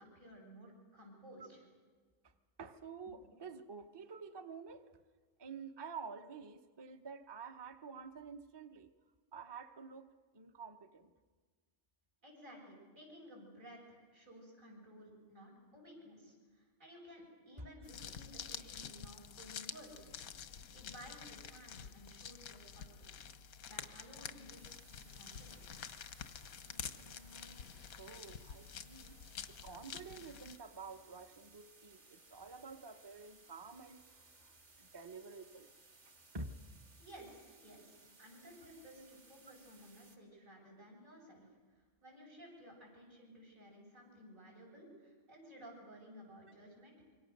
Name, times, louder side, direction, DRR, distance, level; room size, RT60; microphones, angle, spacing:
voice 1, 0.0-1.6 12.2-20.4 20.7-23.1 23.6-25.8 37.0-41.5 41.7-47.1, equal, 70° right, -2 dB, 8.0 m, -56 dB
voice 2, 2.6-4.9 5.4-8.9 9.3-11.1 17.6-17.7 26.7-27.7 28.0-29.2 29.5-34.5 34.8-35.7 36.1-36.5, right 4 dB, 25° right, 8 dB, 0.7 m, -50 dB
sound 1, 17.8-30.6, left 8 dB, 90° left, 1.4 m, -49 dB
sound 2, 24.5-40.2, right 3 dB, 55° right, 2.7 m, -63 dB
26.0 x 23.5 x 6.6 m, 1.5 s
omnidirectional pair, 1.4 m